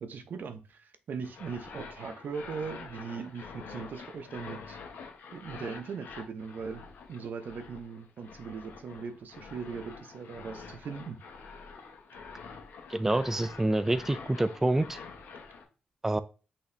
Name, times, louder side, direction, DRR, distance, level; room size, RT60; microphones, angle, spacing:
voice 1, 0.0-4.8 5.3-11.2, right 5 dB, 65° right, 10 dB, 0.6 m, -39 dB
sound 1, 1.2-15.6, left 5 dB, 75° left, 1.0 m, -46 dB
voice 2, 12.9-15.0 16.0-16.2, right 1 dB, 10° right, 11 dB, 0.3 m, -27 dB
5.7 x 2.8 x 3.2 m, 0.34 s
cardioid pair, 80°, 3 cm